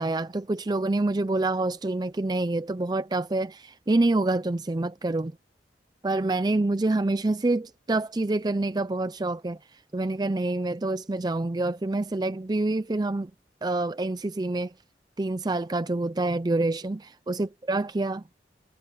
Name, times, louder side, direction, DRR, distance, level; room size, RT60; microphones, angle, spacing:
voice 1, 0.0-5.4 6.0-13.3 13.6-14.7 15.2-18.3, right 2 dB, 20° right, 0.4 m, -27 dB
head